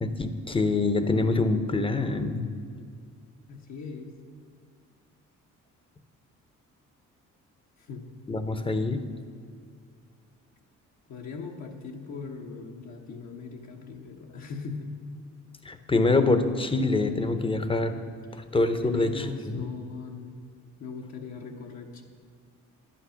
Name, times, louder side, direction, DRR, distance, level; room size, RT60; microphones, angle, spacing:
voice 1, 0.0-2.5 8.3-9.0 15.6-18.0 18.3-19.7, left 3 dB, 15° left, 9 dB, 0.9 m, -25 dB
voice 2, 3.5-4.2 7.8-8.1 11.1-14.9 18.3-18.4 18.8-20.4 20.8-22.0, left 4 dB, 65° left, 0 dB, 1.3 m, -40 dB
11.0 x 8.6 x 5.8 m, 2.3 s
cardioid pair, 90°, 30 cm